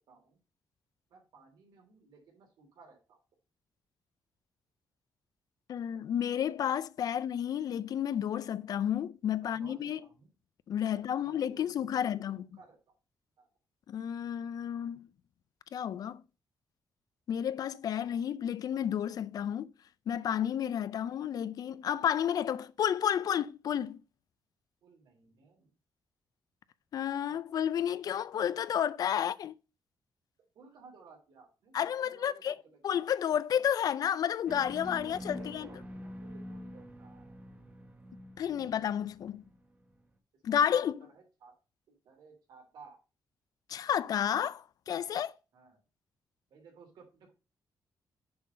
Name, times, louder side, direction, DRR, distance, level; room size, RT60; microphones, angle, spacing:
voice 1, 0.1-0.4 1.1-3.2 7.1-7.2 9.4-10.3 10.9-12.3 12.5-12.9 13.4-13.5 24.8-25.7 30.5-32.9 35.0-37.4 40.5-40.6 41.0-41.6 41.9-43.0 45.5-45.8 46.5-47.3, right 4 dB, 80° right, 3.0 m, -58 dB
voice 2, 5.7-10.0 10.7-12.5 13.9-15.1 15.7-16.2 17.3-19.7 20.1-24.0 26.9-29.5 31.7-32.6 32.8-35.7 38.4-39.4 40.4-41.0 43.7-45.3, left 9 dB, 60° left, 0.4 m, -31 dB
sound 1, 34.5-39.9, equal, 20° right, 1.0 m, -46 dB
6.8 x 3.9 x 5.4 m
cardioid pair, 120°, 7 cm